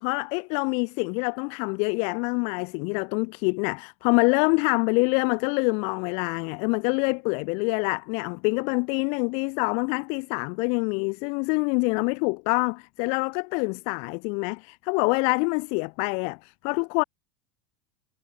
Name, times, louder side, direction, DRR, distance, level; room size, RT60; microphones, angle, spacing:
voice 1, 0.0-17.0, left 36 dB, 45° left, 0.8 m, -26 dB
supercardioid pair, 180°, 15 cm